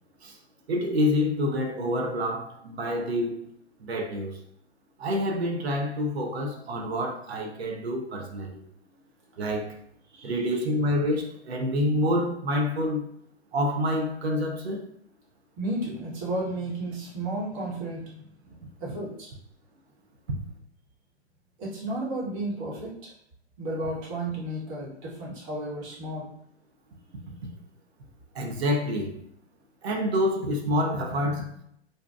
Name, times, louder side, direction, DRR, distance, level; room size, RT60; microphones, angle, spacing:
voice 1, 0.7-3.4 3.8-4.4 5.0-8.6 9.4-9.8 10.2-13.1 13.5-14.8 28.3-29.1 29.8-31.5, left 1 dB, 65° right, 0.6 m, -27 dB
voice 2, 15.6-18.3 18.8-19.3 21.6-23.1 23.6-26.3, right 1 dB, 30° right, 0.9 m, -33 dB
2.7 x 2.1 x 2.2 m
figure-of-eight pair, 115°, 34 cm